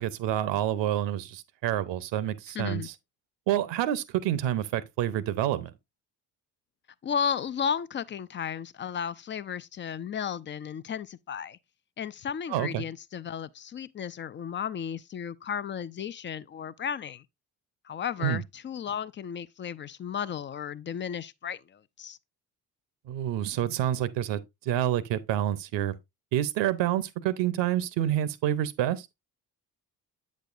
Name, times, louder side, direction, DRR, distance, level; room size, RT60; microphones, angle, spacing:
voice 1, 0.0-2.9 3.5-5.7 12.5-12.8 18.2-18.4 23.1-25.9 26.3-29.1, right 12 dB, 65° right, 0.8 m, -28 dB
voice 2, 2.5-2.9 7.0-11.6 12.0-17.2 17.8-22.2, left 7 dB, 25° left, 0.3 m, -34 dB
8.1 x 6.4 x 2.5 m
hypercardioid pair, 45°, 48 cm